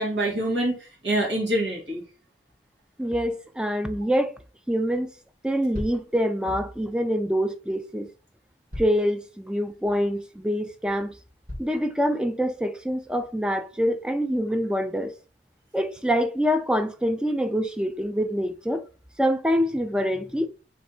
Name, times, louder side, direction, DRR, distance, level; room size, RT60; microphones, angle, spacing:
voice 1, 0.0-2.0, right 1 dB, 85° right, 2.2 m, -26 dB
voice 2, 3.0-4.4 4.7-5.1 5.4-8.1 8.8-11.1 11.6-15.1 15.7-18.8 19.2-20.5, equal, 5° right, 0.3 m, -25 dB
sound 1, 5.7-6.1 7.6-7.7 8.7-9.1 9.6-9.7 10.3-10.4 11.5-11.8, left 1 dB, 45° right, 1.6 m, -36 dB
3.4 x 3.3 x 4.2 m
head